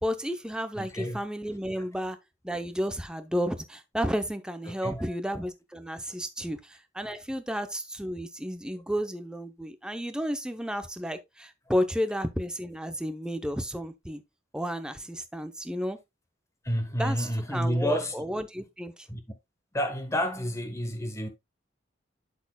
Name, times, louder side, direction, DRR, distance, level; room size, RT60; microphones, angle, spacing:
voice 1, 0.0-2.2 2.4-14.2 14.5-16.0 17.0-19.1, equal, 5° right, 0.6 m, -32 dB
voice 2, 0.8-1.2 1.8-1.9 4.7-5.1 6.4-6.5 16.6-18.2 19.1-19.2 19.7-21.3, equal, 15° left, 1.2 m, -30 dB
12.0 x 4.3 x 2.2 m
head